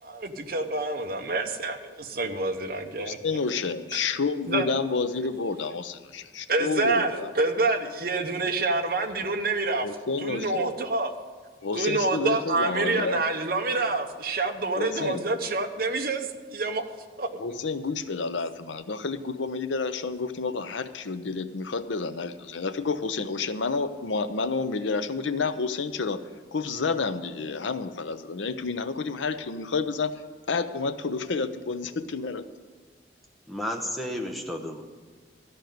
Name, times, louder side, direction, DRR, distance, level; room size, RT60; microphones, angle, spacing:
voice 1, 0.0-3.2 3.9-4.0 4.5-4.7 6.5-9.9 10.2-11.1 11.7-16.8 17.2-17.4, right 3 dB, 50° right, 5 dB, 0.9 m, -27 dB
voice 2, 3.0-7.3 9.7-10.7 11.6-13.2 14.7-15.3 17.4-26.2 26.5-30.1 30.5-32.4, left 4 dB, 85° left, 11 dB, 0.7 m, -30 dB
voice 3, 33.5-34.8, left 1 dB, ahead, 0 dB, 0.9 m, -32 dB
13.5 x 5.3 x 9.2 m, 1.5 s
head